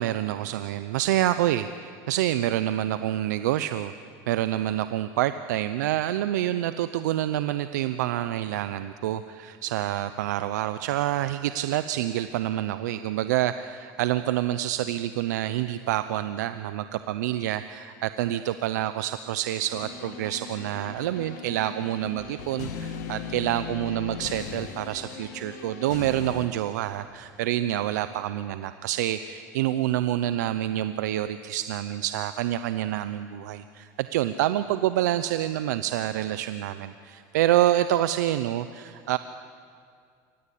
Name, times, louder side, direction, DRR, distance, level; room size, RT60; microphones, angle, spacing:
voice 1, 0.0-3.9 4.3-39.2, right 13 dB, 85° right, 12 dB, 0.7 m, -27 dB
sound 1, 19.7-26.5, left 7 dB, 85° left, 2.1 m, -38 dB
24.0 x 18.5 x 8.6 m, 2.2 s
supercardioid pair, 100°, 9 cm